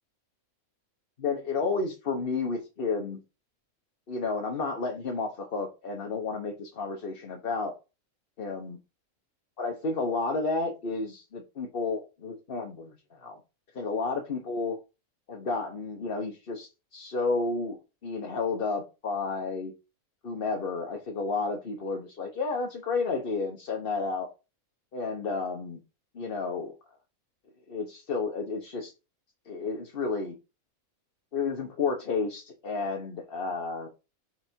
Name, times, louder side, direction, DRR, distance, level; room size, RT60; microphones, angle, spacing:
voice 1, 1.2-3.2 4.1-7.7 8.4-8.8 9.6-13.4 13.7-14.8 15.3-19.7 20.2-24.3 24.9-25.8 26.1-26.7 27.7-28.9 29.5-30.3 31.3-33.9, left 4 dB, 45° left, 1.2 m, -31 dB
5.7 x 4.0 x 4.5 m
omnidirectional pair, 1.4 m